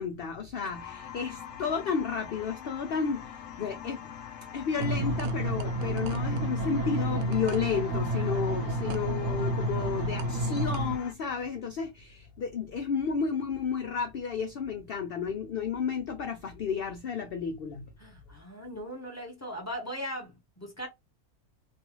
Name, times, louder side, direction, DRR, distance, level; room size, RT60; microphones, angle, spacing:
voice 1, 0.0-4.1 4.5-17.9, left 6 dB, 85° left, 0.5 m, -32 dB
sound 1, 0.7-11.1, left 9 dB, 70° left, 0.9 m, -44 dB
sound 2, 4.8-11.0, right 1 dB, 65° right, 0.9 m, -30 dB
voice 2, 8.2-8.5 18.0-20.9, equal, 10° left, 1.1 m, -39 dB
2.6 x 2.4 x 2.9 m
omnidirectional pair, 1.6 m